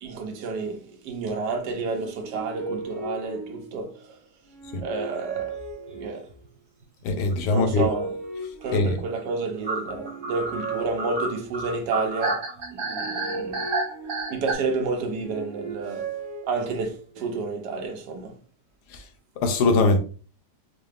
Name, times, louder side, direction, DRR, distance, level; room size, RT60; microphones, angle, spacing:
voice 1, 0.0-4.2 4.8-5.6 5.9-6.3 7.5-8.2 8.6-13.7 14.3-16.1 16.5-18.4, right 3 dB, 75° right, 1.4 m, -30 dB
sound 1, 1.9-4.0 4.5-6.5 7.2-9.3 9.8-11.8 12.5-14.6 15.1-17.1, right 3 dB, 20° left, 0.8 m, -38 dB
sound 2, 5.3-5.6 5.9-6.0 6.3-6.4 7.3-7.6 9.6-14.5, right 3 dB, 40° right, 0.9 m, -30 dB
voice 2, 7.0-7.9 8.7-9.0 18.9-19.0 19.4-20.0, left 3 dB, 75° left, 1.3 m, -21 dB
4.6 x 2.2 x 3.4 m
omnidirectional pair, 1.8 m